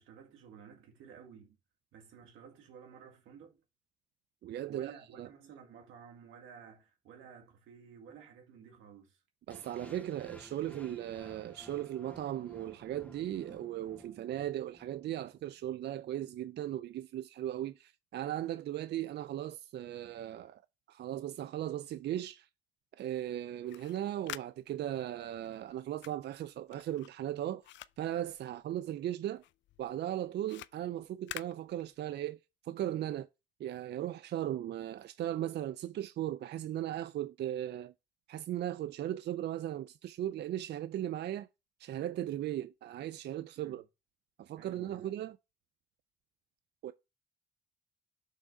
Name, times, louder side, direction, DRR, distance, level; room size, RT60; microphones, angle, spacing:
voice 1, 0.0-1.6 1.9-3.6 4.6-9.2 43.6-43.8 44.6-45.2, right 7 dB, 90° right, 2.1 m, -53 dB
voice 2, 4.4-4.9 5.2-5.3 9.5-20.6 20.9-22.5 23.0-27.6 28.0-29.4 29.8-32.4 32.6-33.3 33.6-37.9 38.3-41.5 41.8-43.8 44.4-45.4 46.8-46.9, right 12 dB, 60° right, 0.4 m, -37 dB
sound 1, 9.5-15.5, equal, 5° left, 0.6 m, -56 dB
sound 2, 23.5-29.1 29.4-32.3, left 14 dB, 70° left, 0.4 m, -49 dB
6.4 x 3.7 x 4.9 m
cardioid pair, 90°, 20 cm